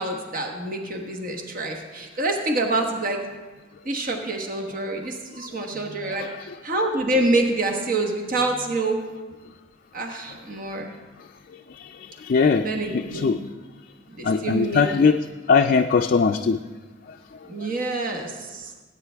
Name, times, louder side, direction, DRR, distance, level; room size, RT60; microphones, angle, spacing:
voice 1, 0.0-3.2 3.8-9.0 9.9-10.9 12.5-13.4 14.1-14.8 17.5-18.7, right 2 dB, 45° right, 3 dB, 1.2 m, -27 dB
voice 2, 6.1-6.5 11.8-11.9 12.2-12.7 12.9-13.4 14.2-15.2 15.5-16.6, left 5 dB, 50° left, 5 dB, 0.3 m, -20 dB
17.5 x 9.0 x 3.4 m, 1.3 s
head